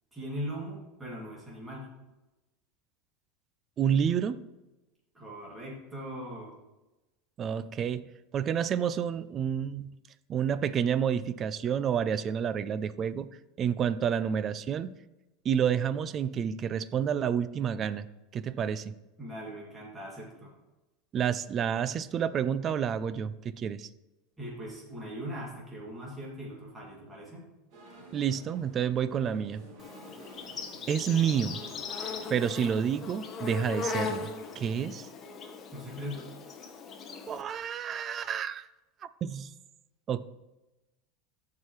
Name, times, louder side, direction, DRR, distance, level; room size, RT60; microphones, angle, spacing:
voice 1, 0.1-1.9 5.1-6.5 19.2-20.5 24.4-27.5 35.7-36.3, equal, 10° right, -5 dB, 2.4 m, -40 dB
voice 2, 3.8-4.4 7.4-8.1 8.3-9.9 10.3-13.3 13.6-14.9 15.4-18.1 18.3-18.9 21.1-23.9 28.1-29.6 30.9-31.6 32.3-34.3 34.6-35.1 37.3-38.7 39.2-39.5 40.1-40.2, right 8 dB, 30° right, 15 dB, 0.4 m, -29 dB
sound 1, 27.7-32.8, right 1 dB, 55° right, 2.4 m, -50 dB
Insect, 29.8-37.4, left 5 dB, 25° left, 1.0 m, -39 dB
14.0 x 4.8 x 3.1 m, 1.0 s
supercardioid pair, 140°, 0 cm